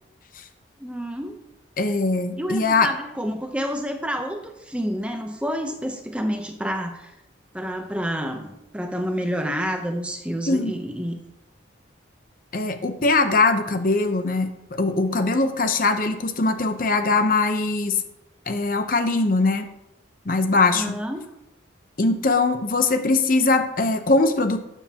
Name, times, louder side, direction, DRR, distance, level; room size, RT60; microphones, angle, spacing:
voice 1, 0.8-1.4 2.4-7.1 7.5-11.2 20.7-21.2, equal, 5° right, 5 dB, 0.7 m, -29 dB
voice 2, 1.8-2.9 10.5-10.7 12.5-18.0 18.5-19.7 20.3-20.9 22.0-24.6, left 3 dB, 45° left, 7 dB, 0.7 m, -21 dB
12.5 x 7.2 x 2.9 m, 0.87 s
head